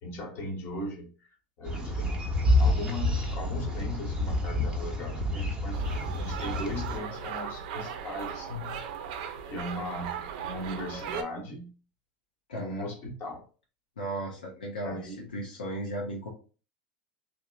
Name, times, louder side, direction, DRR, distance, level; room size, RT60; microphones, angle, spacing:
voice 1, 0.0-2.2 2.4-8.8 9.4-11.7 12.5-13.4 14.8-15.3, left 1 dB, 50° left, 1 dB, 1.0 m, -38 dB
sound 1, 1.6-7.0, left 1 dB, 20° right, 0.7 m, -28 dB
sound 2, 5.7-11.2, right 7 dB, 65° right, 0.4 m, -37 dB
voice 2, 12.5-12.9 14.0-16.3, right 1 dB, 85° left, -1 dB, 0.5 m, -36 dB
2.8 x 2.0 x 2.3 m, 0.36 s
hypercardioid pair, 90°, 5 cm